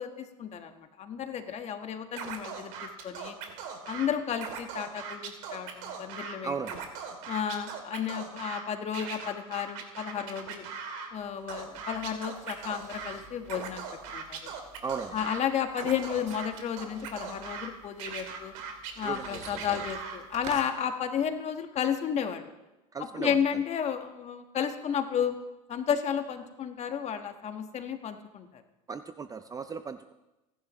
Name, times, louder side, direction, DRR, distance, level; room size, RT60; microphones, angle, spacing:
voice 1, 0.0-2.7 3.0-3.4 3.9-6.5 7.3-10.6 11.1-13.8 14.1-14.5 15.1-18.5 19.0-22.5 23.2-25.3 25.7-28.6, left 8 dB, 40° left, 6 dB, 1.4 m, -32 dB
Scratching (performance technique), 2.2-4.1 4.4-6.3 6.6-8.6 8.9-11.1 11.5-13.1 13.4-15.4 15.7-17.7 18.0-20.2, right 6 dB, 70° right, 2.9 m, -39 dB
voice 2, 6.4-6.8 14.8-15.3 19.0-19.9 22.9-23.4 28.9-30.1, right 5 dB, 20° right, 11 dB, 0.5 m, -36 dB
sound 1, 11.1-20.7, right 5 dB, 40° right, 2.4 m, -50 dB
29.5 x 11.5 x 3.1 m, 1.0 s
supercardioid pair, 100°, 18 cm